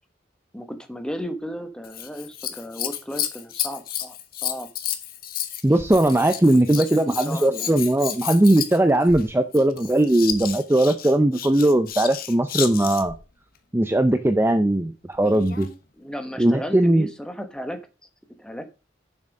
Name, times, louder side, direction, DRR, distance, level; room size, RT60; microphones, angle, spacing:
voice 1, 0.5-4.2 4.4-4.7 6.7-7.8 16.0-17.8 18.4-18.6, equal, 5° left, 7 dB, 1.2 m, -34 dB
Scissors, 1.8-13.2 15.1-15.8 16.5-16.6, left 10 dB, 55° left, 1.1 m, -32 dB
voice 2, 5.6-13.1 13.7-15.7 16.4-17.1, right 1 dB, 15° right, 9 dB, 0.5 m, -19 dB
7.2 x 6.4 x 5.3 m, 0.31 s
head